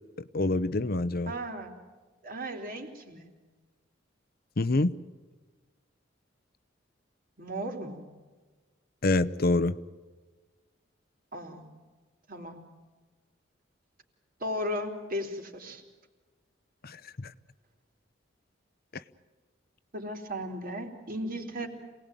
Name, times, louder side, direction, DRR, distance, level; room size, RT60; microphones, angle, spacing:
voice 1, 0.3-1.3 4.6-4.9 9.0-9.8 16.8-17.3, left 2 dB, 55° left, 15 dB, 0.8 m, -26 dB
voice 2, 1.3-1.7 2.2-3.3 7.4-8.0 11.3-11.7 12.3-12.6 14.4-15.8 19.9-21.7, equal, 50° right, 4 dB, 3.7 m, -36 dB
27.5 x 19.5 x 9.2 m, 1.3 s
head